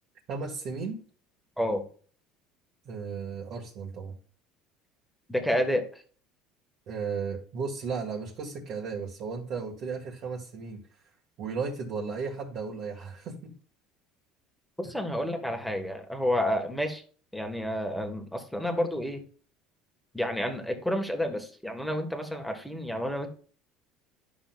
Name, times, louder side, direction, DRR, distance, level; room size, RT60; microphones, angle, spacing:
voice 1, 0.3-1.0 2.8-4.1 6.9-10.8 11.4-13.5 14.8-14.9, right 5 dB, 50° right, -2 dB, 1.6 m, -35 dB
voice 2, 5.3-6.0 14.8-17.0 17.3-19.2 20.1-23.3, equal, ahead, 5 dB, 1.3 m, -30 dB
11.5 x 6.1 x 2.3 m, 0.42 s
cardioid pair, 140°, 0 cm